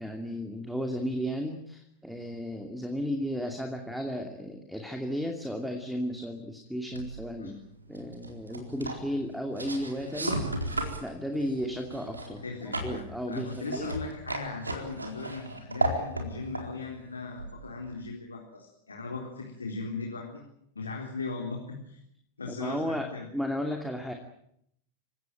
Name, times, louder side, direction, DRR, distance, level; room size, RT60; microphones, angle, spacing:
voice 1, 0.0-7.6 7.9-12.4 12.8-13.9 22.5-24.1, equal, ahead, 4 dB, 2.5 m, -34 dB
sound 1, 6.9-18.0, right 1 dB, 80° right, 4.2 m, -36 dB
voice 2, 12.4-20.4 20.8-22.0 22.4-23.3, left 3 dB, 75° left, 0 dB, 3.9 m, -38 dB
28.5 x 17.0 x 9.2 m, 0.74 s
figure-of-eight pair, 90°, 0 cm